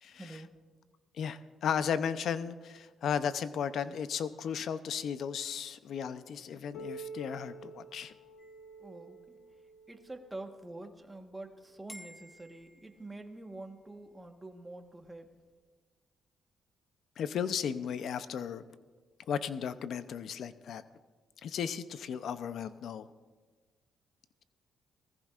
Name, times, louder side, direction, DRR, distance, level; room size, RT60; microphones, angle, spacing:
voice 1, 0.1-0.5 8.8-9.4 9.9-15.3, right 2 dB, 15° right, 4 dB, 1.3 m, -46 dB
voice 2, 1.2-8.1 17.2-18.6 19.3-20.8 21.4-23.1, left 7 dB, 70° left, 12 dB, 0.6 m, -35 dB
Piano, 6.7-12.1 12.9-13.0 13.5-13.6 14.4-14.5 15.5-15.6, right 2 dB, 85° left, 1.1 m, -49 dB
sound 1, 8.4-9.9 11.9-13.5, equal, 20° left, 1.7 m, -55 dB
20.0 x 14.5 x 2.5 m, 1.4 s
cardioid pair, 90°, 0 cm